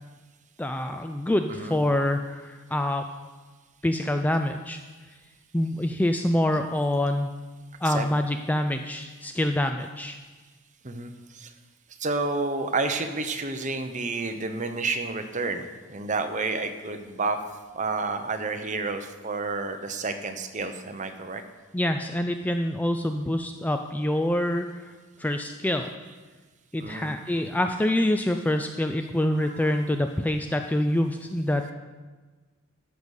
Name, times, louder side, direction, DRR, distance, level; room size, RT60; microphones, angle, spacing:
voice 1, 0.6-3.1 3.8-4.8 5.5-7.3 7.8-10.2 21.7-24.9 25.2-25.9 26.7-31.7, left 1 dB, 5° left, 6 dB, 0.3 m, -26 dB
voice 2, 1.5-1.8 7.8-8.1 10.8-11.5 12.0-15.6 15.9-17.4 17.7-21.4 26.8-27.4 29.4-29.8 31.6-31.7, right 3 dB, 35° right, 7 dB, 0.8 m, -30 dB
13.5 x 5.3 x 6.4 m, 1.3 s
head